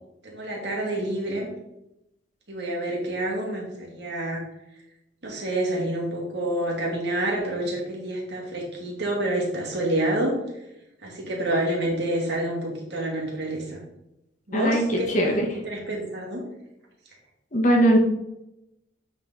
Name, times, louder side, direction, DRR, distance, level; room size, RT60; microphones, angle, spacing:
voice 1, 0.2-1.5 2.5-4.4 5.2-10.4 11.0-13.8 14.5-16.4, right 1 dB, 60° right, -2 dB, 2.4 m, -28 dB
voice 2, 14.5-15.5 17.5-18.0, right 1 dB, 40° left, 0 dB, 1.4 m, -20 dB
9.0 x 4.0 x 4.0 m, 0.86 s
head